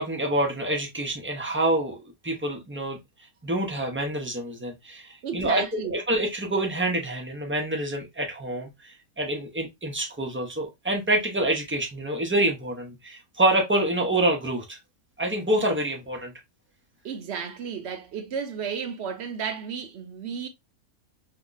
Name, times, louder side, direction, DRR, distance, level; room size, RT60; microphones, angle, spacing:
voice 1, 0.0-3.0 3.4-5.6 5.9-14.8 15.2-16.3, right 1 dB, 20° right, 0.3 m, -27 dB
voice 2, 5.2-5.9 17.0-20.5, right 7 dB, 60° right, 0.8 m, -33 dB
2.9 x 2.2 x 3.8 m
omnidirectional pair, 1.5 m